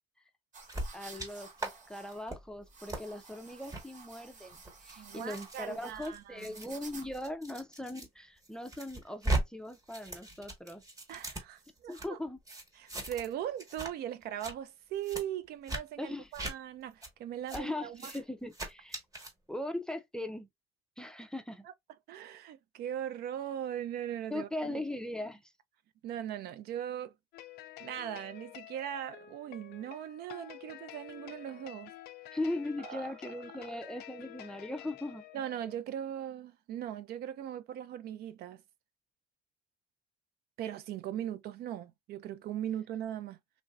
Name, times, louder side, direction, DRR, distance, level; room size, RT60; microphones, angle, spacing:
sound 1, 0.5-7.4, right 4 dB, 50° right, 1.1 m, -53 dB
sound 2, 0.7-1.3 1.6-1.7 2.1-2.4 2.9-3.0 3.6-3.8 4.5-8.1 8.4-9.4 9.7-12.1 12.5-13.3 13.6-13.9 14.2-14.5 15.0-15.2 15.7-15.8 16.3-16.5 17.0-17.1 17.5-17.6 17.9-18.2 18.5-19.3, right 2 dB, 20° right, 1.1 m, -38 dB
voice 1, 0.9-10.8 11.9-12.4 16.0-16.3 17.5-19.0 19.5-20.5 21.0-21.7 24.3-25.5 32.3-35.2, left 1 dB, 5° left, 0.4 m, -39 dB
voice 2, 5.0-6.5 11.1-12.2 12.8-18.1 21.6-21.7 22.1-24.8 26.0-27.1 27.8-31.9 32.8-33.1 33.6-33.7 35.3-38.6 40.6-43.4, right 10 dB, 70° right, 0.4 m, -39 dB
sound 3, 27.3-35.8, left 14 dB, 70° left, 0.4 m, -50 dB
3.1 x 2.6 x 2.3 m
cardioid pair, 110°, 17 cm